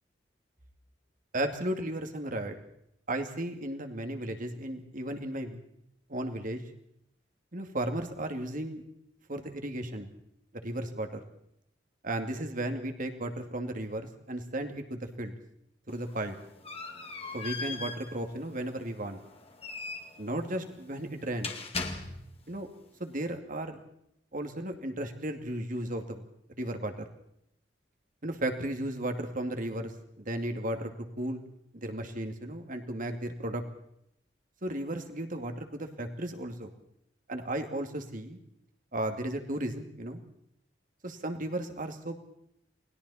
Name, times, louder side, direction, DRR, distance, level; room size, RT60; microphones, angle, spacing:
voice 1, 1.3-2.6 3.1-5.6 6.1-6.6 7.5-8.8 9.3-10.1 10.6-11.3 12.0-15.3 15.9-16.4 17.3-19.2 20.2-21.5 22.5-22.7 23.0-23.8 24.3-26.2 26.6-27.0 28.2-31.4 31.7-33.6 34.6-36.7 37.3-38.4 38.9-40.2 41.0-42.2, right 1 dB, 50° right, 6 dB, 2.4 m, -35 dB
sound 1, 15.9-22.5, left 4 dB, 35° left, 2.2 m, -40 dB
29.5 x 20.5 x 4.3 m, 0.76 s
head